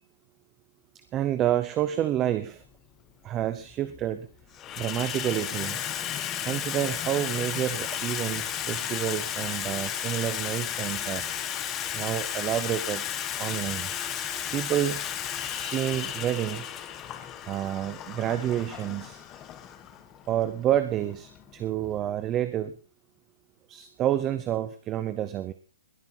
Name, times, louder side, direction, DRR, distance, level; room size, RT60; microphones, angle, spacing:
voice 1, 1.1-2.6 3.2-4.3 4.8-5.8 6.4-11.3 11.9-13.0 13.4-14.0 14.5-15.0 15.3-16.7 17.5-19.2 20.3-22.7 23.7-25.5, right 11 dB, 15° right, 12 dB, 0.6 m, -29 dB
Water tap faucet / Sink (filling or washing), 2.6-2.7 3.7-4.1 4.4-22.0, left 10 dB, 15° left, 1.0 m, -34 dB
20.5 x 9.6 x 4.4 m, 0.35 s
hypercardioid pair, 175°, 0 cm